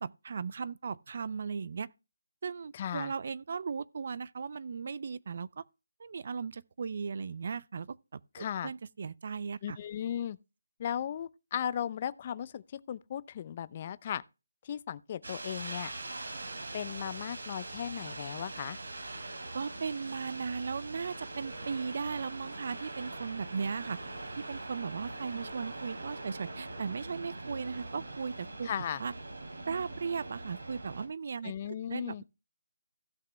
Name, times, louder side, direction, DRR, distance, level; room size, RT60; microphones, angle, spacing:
voice 1, 0.0-1.9 2.4-5.6 6.0-9.8 19.5-24.0 24.4-28.7 29.0-29.1 29.7-32.2, right 5 dB, 50° right, 0.6 m, -37 dB
voice 2, 2.7-3.1 8.3-8.7 9.6-10.4 10.8-14.2 14.6-15.9 16.7-18.8 28.6-29.0 31.4-32.2, left 9 dB, 30° left, 0.6 m, -36 dB
sound 1, 15.2-31.1, right 2 dB, 85° right, 3.4 m, -42 dB
16.0 x 5.9 x 3.2 m
figure-of-eight pair, 160°, 0 cm